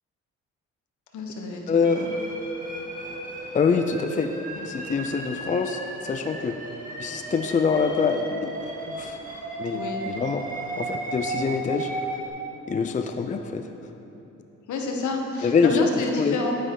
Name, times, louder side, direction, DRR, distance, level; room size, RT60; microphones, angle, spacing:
voice 1, 1.1-2.2 4.5-4.7 9.7-10.0 14.7-16.5, left 3 dB, 75° left, 2 dB, 1.3 m, -29 dB
voice 2, 1.7-2.1 3.5-4.3 4.6-6.6 7.0-8.6 8.9-9.2 9.6-11.9 12.7-13.7 15.4-15.9 16.2-16.4, left 5 dB, 25° left, 7 dB, 0.5 m, -25 dB
sound 1, 1.8-12.3, right 2 dB, 25° right, 1.7 m, -35 dB
11.0 x 9.3 x 3.9 m, 3.0 s
cardioid pair, 90°, 30 cm